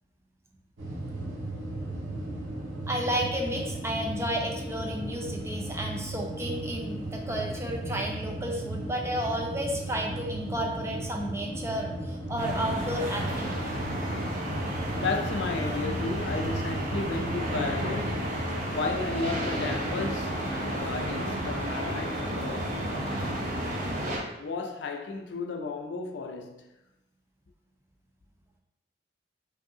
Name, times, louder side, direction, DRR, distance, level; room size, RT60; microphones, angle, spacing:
sound 1, 0.8-18.3, right 1 dB, 75° right, 1.3 m, -36 dB
voice 1, 2.9-13.8, equal, 15° right, 0.5 m, -32 dB
sound 2, 12.4-24.2, right 1 dB, 45° right, 0.8 m, -32 dB
voice 2, 15.0-18.3 18.7-23.0 24.4-26.6, left 3 dB, 70° left, 0.5 m, -33 dB
5.0 x 2.7 x 2.7 m
head